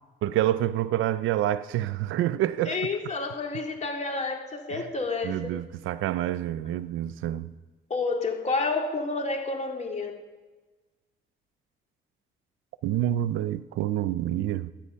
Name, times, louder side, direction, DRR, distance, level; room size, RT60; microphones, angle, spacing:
voice 1, 0.2-2.8 4.7-4.8 5.2-7.5 12.8-14.7, right 13 dB, 85° right, 0.6 m, -27 dB
voice 2, 2.7-5.5 7.9-10.2, left 3 dB, 35° left, 2.4 m, -29 dB
22.5 x 9.0 x 5.6 m
cardioid pair, 90°, 20 cm